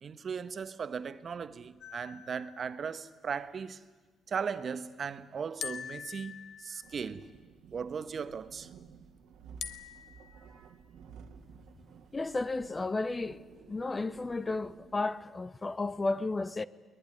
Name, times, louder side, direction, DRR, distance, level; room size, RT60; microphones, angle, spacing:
voice 1, 0.0-3.8 4.3-7.3 7.7-8.7 10.5-10.7 11.9-12.0, right 6 dB, 50° right, 1.1 m, -37 dB
sound 1, 1.8-3.3 5.6-7.3 9.6-10.7, left 8 dB, 70° left, 1.1 m, -45 dB
sound 2, 6.8-15.1, right 6 dB, 80° right, 1.8 m, -54 dB
voice 2, 12.1-13.4 13.7-16.6, left 3 dB, 25° left, 0.8 m, -33 dB
22.5 x 20.0 x 9.8 m
cardioid pair, 90°, 0 cm